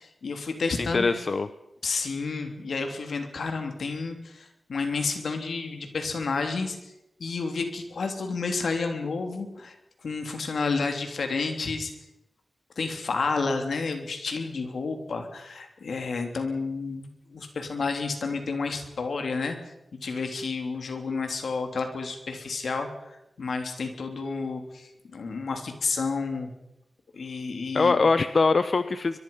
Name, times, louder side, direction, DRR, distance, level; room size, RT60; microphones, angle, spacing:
voice 1, 0.0-1.2 1.8-6.9 7.2-9.8 10.0-11.9 12.8-19.7 20.0-26.5 27.1-27.9, left 4 dB, 80° left, 5 dB, 3.4 m, -30 dB
voice 2, 0.8-1.5 27.7-29.2, left 4 dB, 55° left, 12 dB, 0.9 m, -22 dB
24.0 x 22.5 x 5.7 m, 0.88 s
wide cardioid pair, 70°, 0 cm